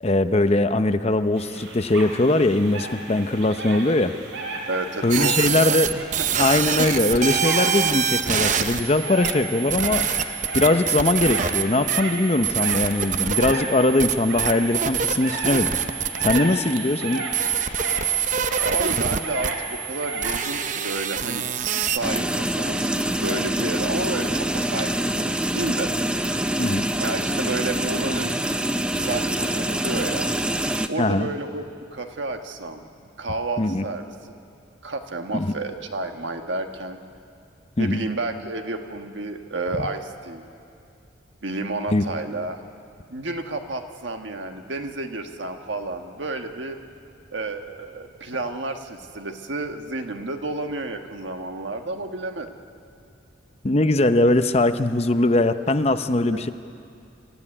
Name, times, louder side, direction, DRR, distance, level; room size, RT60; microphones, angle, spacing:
voice 1, 0.0-4.1 5.0-5.9 6.4-10.0 10.5-15.7 16.2-17.2 26.6-26.9 31.0-31.3 33.6-33.8 35.3-35.5 37.8-38.0 41.9-42.0 53.6-56.5, left 2 dB, 30° left, 10 dB, 0.7 m, -21 dB
sound 1, 1.4-20.4, right 2 dB, 85° right, 3.8 m, -34 dB
voice 2, 4.7-5.8 6.2-6.5 18.6-26.1 27.0-28.3 28.9-30.3 30.9-31.7 31.9-32.9 33.2-34.3 34.8-37.0 37.8-40.4 41.4-42.6 43.1-46.8 47.3-52.5 56.2-56.4, right 2 dB, 70° right, 5 dB, 1.5 m, -31 dB
sound 2, 5.1-22.0, right 8 dB, 40° right, 0.7 m, -26 dB
sound 3, 22.0-30.9, right 1 dB, 5° right, 0.5 m, -25 dB
25.5 x 14.5 x 9.9 m, 2.5 s
head